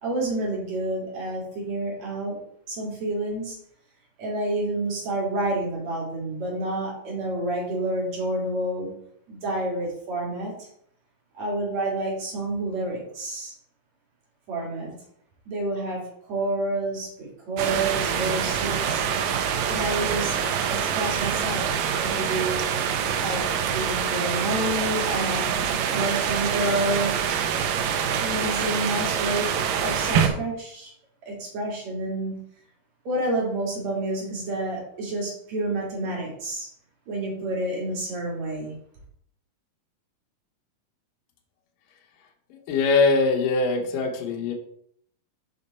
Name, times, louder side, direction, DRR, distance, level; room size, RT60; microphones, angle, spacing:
voice 1, 0.0-2.4 2.7-3.6 4.2-8.9 9.3-10.7 11.3-13.5 14.5-14.9 15.5-19.1 19.6-20.4 20.7-22.6 23.2-27.2 28.2-29.5 29.8-30.9 31.2-32.3 33.0-36.7 37.1-38.7, right 1 dB, 55° right, -3 dB, 3.2 m, -29 dB
sound 1, 17.6-30.3, right 7 dB, 85° right, 2.3 m, -25 dB
voice 2, 42.5-44.5, left 3 dB, 80° left, 1 dB, 2.6 m, -22 dB
6.5 x 5.2 x 4.1 m, 0.68 s
omnidirectional pair, 3.9 m